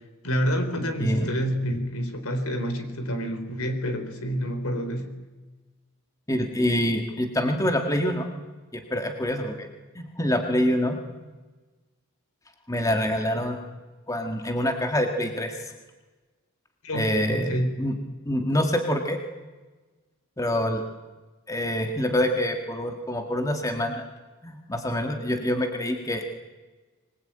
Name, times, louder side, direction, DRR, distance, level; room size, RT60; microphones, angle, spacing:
voice 1, 0.2-5.1 16.8-17.8, equal, 80° left, 8 dB, 3.9 m, -28 dB
voice 2, 6.3-8.3 8.7-9.7 10.0-11.0 12.7-13.6 14.1-15.5 16.9-17.5 17.8-17.9 18.3-19.2 20.4-20.8 21.5-24.0 24.4-26.3, equal, 15° left, 4 dB, 1.8 m, -26 dB
24.5 x 21.0 x 9.0 m, 1.3 s
head